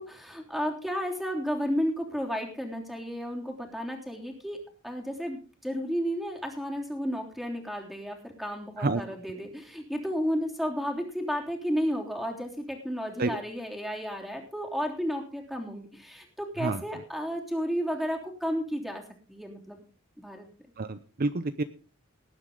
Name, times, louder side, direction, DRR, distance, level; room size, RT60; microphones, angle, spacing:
voice 1, 0.0-4.6 4.8-19.0 19.3-19.8 20.2-20.5, equal, ahead, 1 dB, 3.2 m, -32 dB
voice 2, 20.8-21.6, right 3 dB, 45° right, 11 dB, 0.7 m, -28 dB
19.0 x 9.5 x 3.8 m, 0.37 s
head